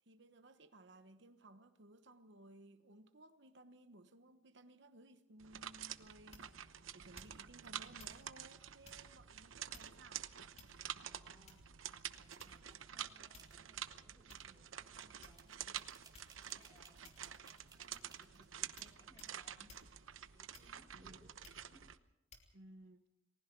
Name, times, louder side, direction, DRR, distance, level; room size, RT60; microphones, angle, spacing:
voice 1, 0.0-10.3 20.9-21.2 22.5-23.1, right 2 dB, 60° right, 1.1 m, -60 dB
sound 1, 5.4-22.0, right 10 dB, 80° right, 0.9 m, -49 dB
sound 2, 6.3-6.7 7.1-7.6 8.0-8.2 8.8-9.1 9.7-10.1 10.6-11.0 11.5-11.8 12.4-12.8 13.3-13.6 14.3-14.4 15.2-15.6 16.1-16.4 17.0-17.4 17.9-18.2 18.8-18.9 19.2-19.4 19.7-19.9 20.5-20.9 21.4-21.7 22.3-22.5, left 3 dB, 35° left, 3.0 m, -60 dB
voice 2, 11.0-11.6 12.1-15.9 16.4-19.7 20.3-21.3 21.7-21.9, equal, 15° left, 3.8 m, -68 dB
sound 3, 11.9-12.8 13.4-13.6 15.0-15.1 15.4-18.8, right 5 dB, 20° right, 2.7 m, -64 dB
29.5 x 20.0 x 4.6 m
head